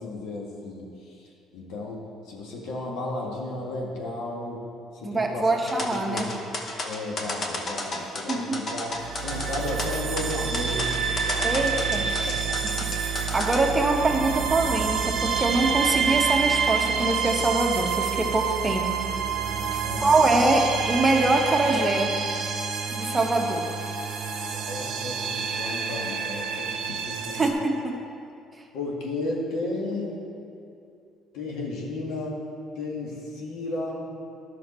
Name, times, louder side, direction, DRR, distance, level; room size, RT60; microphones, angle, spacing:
voice 1, 0.0-4.6 4.9-5.5 6.1-6.4 6.8-9.0 9.2-10.9 11.2-11.7 12.2-13.0 19.8-20.2 24.1-27.4 28.7-30.2 31.3-32.4 32.7-34.1, left 2 dB, 80° left, -2 dB, 1.7 m, -34 dB
voice 2, 5.0-6.3 8.3-8.6 11.4-12.4 13.0-19.0 20.0-22.1 22.9-23.7 27.3-27.9, right 2 dB, 20° right, 2 dB, 1.0 m, -24 dB
sound 1, 5.7-13.6, left 2 dB, 40° left, 1.1 m, -32 dB
sound 2, 8.9-27.5, right 6 dB, 65° right, 0.8 m, -28 dB
11.5 x 6.0 x 4.3 m, 2.5 s
cardioid pair, 100°, 0 cm